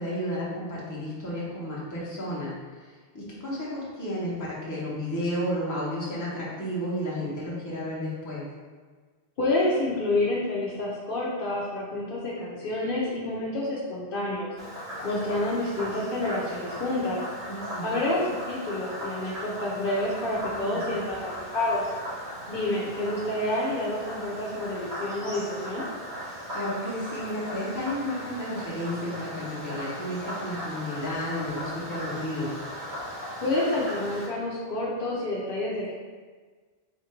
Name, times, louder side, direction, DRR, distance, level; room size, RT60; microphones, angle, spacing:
voice 1, 0.0-8.4 17.5-18.0 20.5-21.0 26.5-32.5, equal, 20° left, -7 dB, 0.9 m, -32 dB
voice 2, 9.4-14.5 15.0-17.2 17.8-21.8 22.5-25.9 33.4-35.9, left 2 dB, 60° left, -5 dB, 0.8 m, -28 dB
Frog, 14.6-34.3, equal, 85° right, 1.6 m, -38 dB
3.5 x 2.5 x 4.3 m, 1.5 s
omnidirectional pair, 1.1 m